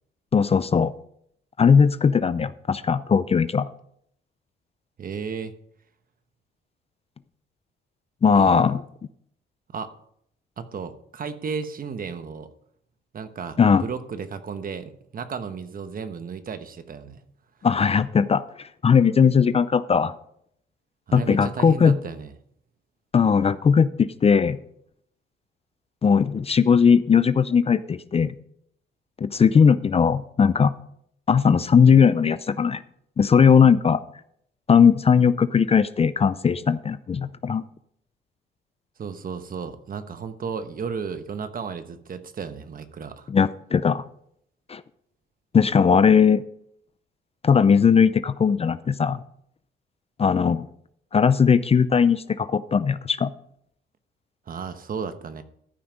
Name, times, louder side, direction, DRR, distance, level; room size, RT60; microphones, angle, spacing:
voice 1, 0.3-0.9 1.6-3.7 8.2-8.8 13.6-13.8 17.6-18.4 18.8-20.1 21.1-22.0 23.1-24.6 26.0-28.4 29.2-30.7 31.3-32.8 33.2-34.0 34.7-37.6 43.3-44.0 44.7-44.8 45.5-46.4 47.4-49.2 50.2-50.7 51.1-53.3, left 6 dB, 30° left, 15 dB, 0.5 m, -18 dB
voice 2, 5.0-5.5 8.3-8.6 9.7-9.9 10.6-12.5 13.1-17.2 21.1-22.3 39.0-43.3 54.5-55.4, right 6 dB, 45° right, 10 dB, 1.1 m, -34 dB
13.5 x 5.8 x 5.1 m, 0.69 s
cardioid pair, 90°, 20 cm